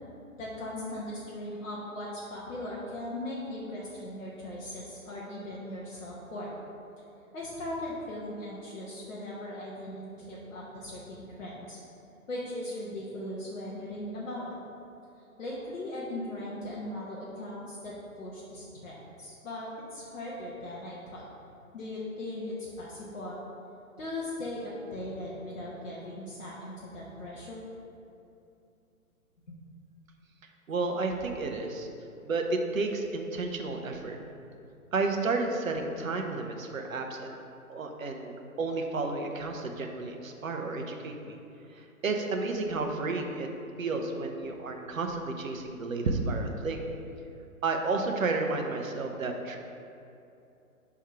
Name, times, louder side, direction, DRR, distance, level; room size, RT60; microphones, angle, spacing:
voice 1, 0.4-6.5 7.3-11.8 12.3-14.5 15.4-21.2 21.7-23.4 24.0-27.6 29.5-29.6, left 1 dB, 60° left, -6 dB, 1.1 m, -39 dB
voice 2, 30.7-31.9 32.2-34.2 34.9-37.4 37.7-41.4 41.7-43.5 43.8-46.8 47.6-49.6, right 3 dB, 65° right, 3 dB, 0.8 m, -31 dB
5.8 x 3.6 x 4.6 m, 2.7 s
figure-of-eight pair, 130°, 43 cm